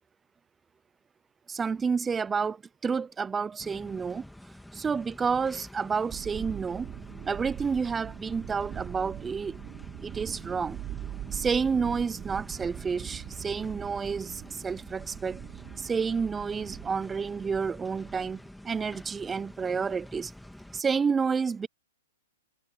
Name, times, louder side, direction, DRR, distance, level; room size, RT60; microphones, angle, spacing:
voice 1, 1.5-4.2 4.7-6.9 7.2-9.6 10.0-10.8 11.3-15.4 15.8-20.3 20.7-21.7, right 5 dB, 15° right, 0.4 m, -30 dB
sound 1, 3.6-20.8, left 1 dB, ahead, 2.9 m, -48 dB
sound 2, 6.1-18.4, right 13 dB, 30° right, 5.1 m, -42 dB
hypercardioid pair, 120°, 0 cm